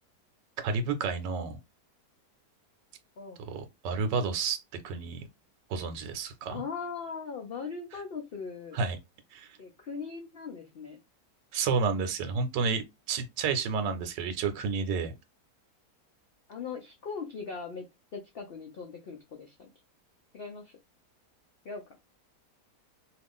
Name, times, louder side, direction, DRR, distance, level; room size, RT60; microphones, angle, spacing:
voice 1, 0.6-1.6 3.5-4.6 4.8-5.3 5.7-6.6 8.7-9.0 9.3-9.5 11.5-15.1, right 5 dB, 90° right, 1.3 m, -30 dB
voice 2, 6.5-8.8 9.6-11.0 16.5-17.8 18.1-19.7 20.3-20.8 21.6-22.0, left 5 dB, 80° left, 0.5 m, -39 dB
2.8 x 2.5 x 3.5 m
omnidirectional pair, 1.8 m